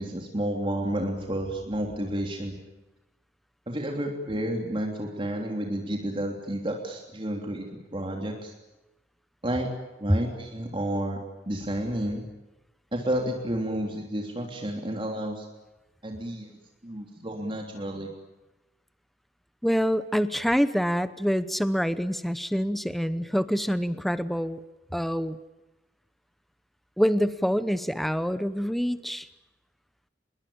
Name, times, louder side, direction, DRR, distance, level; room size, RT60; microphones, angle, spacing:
voice 1, 0.0-2.6 3.7-8.5 9.4-9.7 10.0-11.2 11.5-12.2 12.9-15.5 16.0-16.5 16.8-18.1, right 1 dB, 30° right, 1 dB, 3.3 m, -31 dB
voice 2, 19.6-24.6 24.9-25.4 27.0-29.3, equal, ahead, 13 dB, 0.9 m, -26 dB
28.0 x 22.0 x 8.8 m, 1.0 s
head